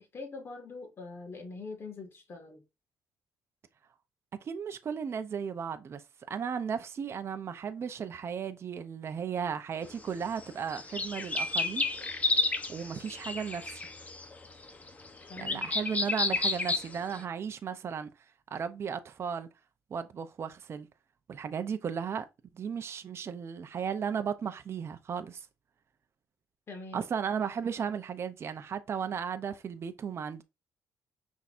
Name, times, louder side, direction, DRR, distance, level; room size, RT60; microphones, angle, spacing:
voice 1, 0.0-2.6 15.3-15.7 26.7-27.1, left 3 dB, 40° left, 1.9 m, -43 dB
voice 2, 4.4-6.0 6.3-11.9 12.7-13.8 15.4-18.1 18.5-19.5 19.9-20.9 21.3-22.2 22.5-25.5 26.9-30.4, right 7 dB, 45° right, 0.5 m, -35 dB
sound 1, 9.9-10.0 10.2-17.2, left 3 dB, 25° left, 0.8 m, -31 dB
5.8 x 3.5 x 2.5 m
cardioid pair, 90°, 6 cm